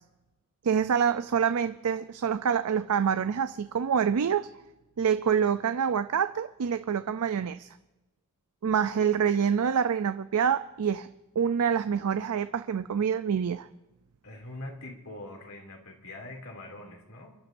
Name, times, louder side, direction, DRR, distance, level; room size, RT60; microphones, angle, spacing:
voice 1, 0.6-4.5 5.0-7.7 8.6-11.1 11.4-13.7, right 7 dB, 90° right, 11 dB, 0.4 m, -26 dB
voice 2, 14.2-17.4, left 1 dB, 75° left, 2 dB, 2.6 m, -43 dB
28.0 x 11.5 x 2.6 m, 1.0 s
head